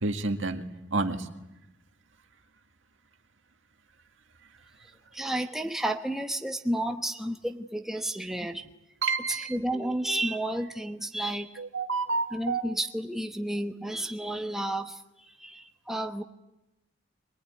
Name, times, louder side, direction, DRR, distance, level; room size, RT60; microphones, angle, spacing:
voice 1, 0.0-0.6 0.9-1.2 9.0-9.5 11.6-12.6, right 3 dB, 75° right, 5 dB, 2.0 m, -29 dB
voice 2, 5.1-8.7 9.3-11.6 12.3-16.2, right 1 dB, ahead, 3 dB, 1.0 m, -32 dB
23.0 x 22.0 x 9.5 m, 0.93 s
head